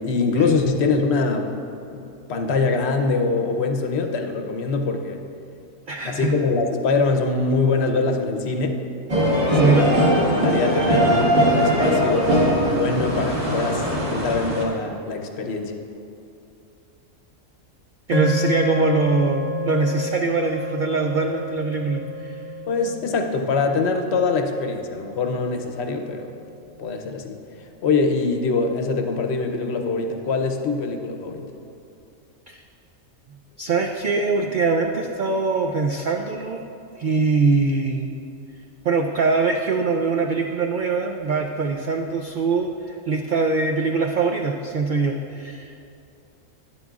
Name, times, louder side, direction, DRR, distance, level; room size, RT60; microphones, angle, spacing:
voice 1, 0.0-1.5 1.9-5.2 6.0-8.8 9.6-10.0 10.3-15.7 22.7-26.3 26.8-27.4 27.8-31.5, left 4 dB, 60° left, 4 dB, 0.9 m, -23 dB
voice 2, 5.9-6.3 9.5-9.9 18.1-22.4 32.5-32.6 33.6-36.6 37.0-38.1 38.8-45.8, right 4 dB, 85° right, 3 dB, 0.4 m, -22 dB
sound 1, 9.1-14.6, equal, 35° right, 1.7 m, -20 dB
sound 2, 18.1-26.5, equal, 40° left, 0.4 m, -30 dB
11.5 x 10.5 x 2.4 m, 2.7 s
omnidirectional pair, 1.4 m